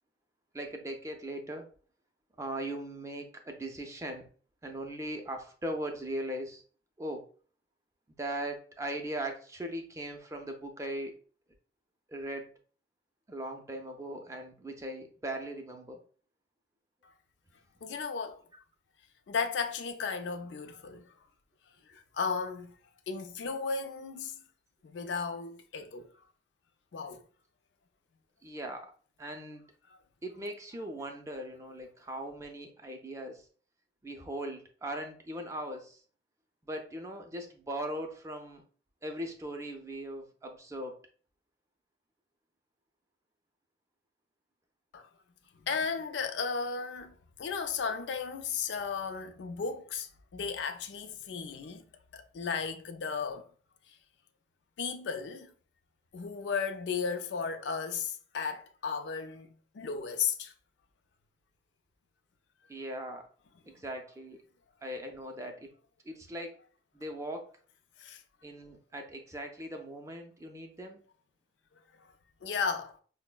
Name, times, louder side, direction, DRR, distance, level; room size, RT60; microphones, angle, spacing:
voice 1, 0.5-1.7 2.4-4.3 4.6-6.6 7.0-7.2 8.1-11.1 12.1-12.6 13.3-16.0 28.4-28.9 29.2-29.7 30.2-33.4 34.0-36.0 36.6-38.6 39.0-41.0 62.7-63.3 63.6-64.4 64.8-65.7 66.0-66.5 66.9-67.5 68.4-71.0, right 1 dB, 15° right, 0.4 m, -39 dB
voice 2, 17.8-18.4 19.3-21.1 21.9-22.7 23.1-24.4 24.8-26.1 26.9-27.2 44.9-45.1 45.6-51.8 52.1-53.5 54.8-55.5 56.1-60.5 68.0-68.2 71.9-72.1 72.4-73.0, left 5 dB, 75° left, 0.4 m, -35 dB
5.0 x 2.0 x 2.2 m
head